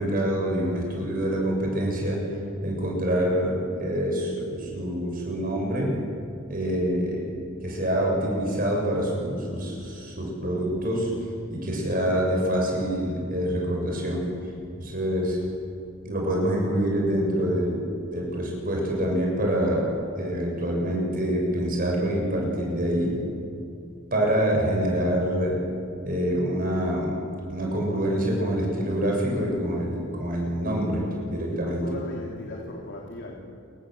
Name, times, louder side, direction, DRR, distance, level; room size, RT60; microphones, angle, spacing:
voice 1, 0.0-2.2 2.6-6.0 6.5-7.2 7.6-11.1 11.5-14.2 14.8-15.4 16.0-19.9 20.2-23.2 24.1-25.6 26.0-27.2 27.5-31.8, equal, 45° right, -1 dB, 7.2 m, -26 dB
voice 2, 31.5-33.4, left 1 dB, 55° left, -2 dB, 3.6 m, -37 dB
28.0 x 25.0 x 8.0 m, 2.6 s
head